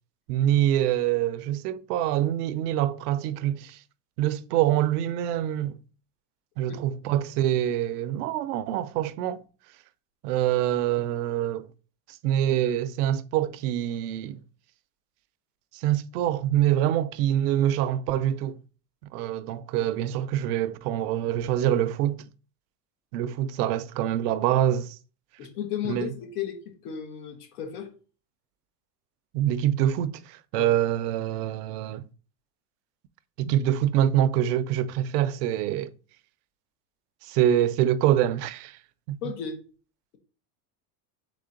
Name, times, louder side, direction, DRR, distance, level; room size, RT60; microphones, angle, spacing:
voice 1, 0.3-3.8 4.2-5.8 6.6-9.4 10.2-11.7 12.2-14.4 15.7-18.6 19.1-22.3 23.1-25.0 25.8-26.1 29.3-32.1 33.4-35.9 37.2-38.8 39.1-39.2, right 11 dB, 90° right, 0.5 m, -25 dB
voice 2, 25.4-27.9 30.5-30.7 39.2-39.6, left 9 dB, 85° left, 1.3 m, -34 dB
3.8 x 3.2 x 3.8 m
supercardioid pair, 120°, 45 cm